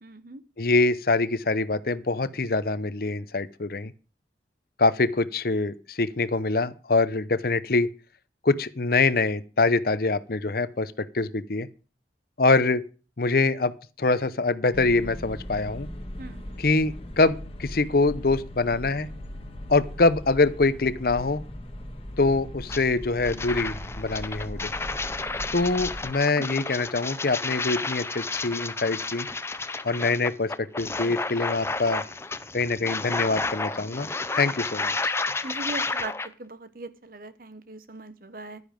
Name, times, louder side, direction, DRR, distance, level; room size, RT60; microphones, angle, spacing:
voice 1, 0.0-0.4 16.2-16.6 25.2-25.6 26.4-26.5 35.4-38.6, right 2 dB, 55° right, 1.1 m, -40 dB
voice 2, 0.6-3.9 4.8-7.9 8.4-11.7 12.4-12.8 13.2-13.7 14.0-15.9 16.6-19.1 19.7-21.4 22.2-24.7 25.5-29.3 29.8-32.0 32.5-34.1 34.3-35.1, left 3 dB, 55° left, 0.8 m, -24 dB
sound 1, 14.7-26.1, equal, 35° left, 1.5 m, -39 dB
sound 2, 22.7-22.8 23.2-36.3, left 3 dB, 15° left, 0.6 m, -31 dB
11.0 x 9.9 x 5.2 m
head